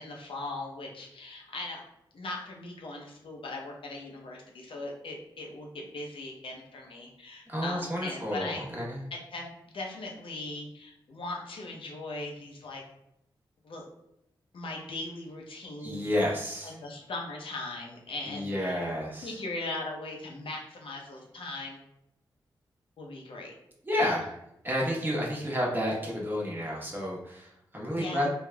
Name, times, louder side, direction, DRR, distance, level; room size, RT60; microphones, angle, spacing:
voice 1, 0.0-1.8 2.1-8.6 9.1-12.8 13.6-13.9 14.5-16.0 16.6-18.8 19.2-21.8 23.0-23.5 23.9-24.1 27.9-28.3, left 2 dB, 70° left, -1 dB, 0.7 m, -39 dB
voice 2, 7.5-9.0 15.8-16.8 18.2-19.4 23.8-24.3 24.6-28.3, equal, 20° right, -4 dB, 1.1 m, -31 dB
3.3 x 2.3 x 2.2 m, 0.80 s
cardioid pair, 50°, 9 cm